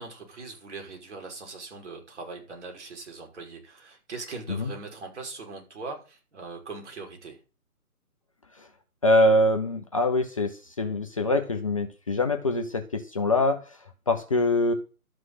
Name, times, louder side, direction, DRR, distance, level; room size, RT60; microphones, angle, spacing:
voice 1, 0.0-7.4, right 3 dB, 50° right, 5.8 m, -40 dB
voice 2, 9.0-13.8 14.1-14.7, left 1 dB, 25° left, 0.7 m, -24 dB
12.5 x 6.3 x 7.7 m
figure-of-eight pair, 150°, 44 cm